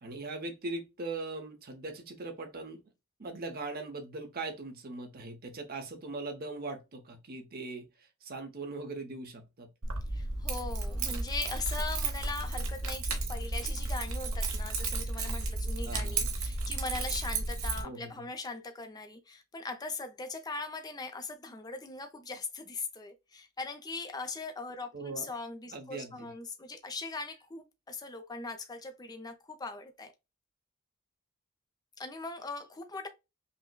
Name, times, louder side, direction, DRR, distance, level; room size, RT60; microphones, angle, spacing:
voice 1, 0.0-2.8 3.2-9.7 15.8-16.3 17.8-18.3 24.9-25.3 25.7-26.3, right 3 dB, 45° right, 0.8 m, -40 dB
Keys jangling, 9.8-17.8, right 3 dB, 70° right, 1.0 m, -33 dB
voice 2, 10.1-30.1 32.0-33.1, left 3 dB, 20° left, 0.5 m, -40 dB
5.3 x 2.1 x 2.2 m
head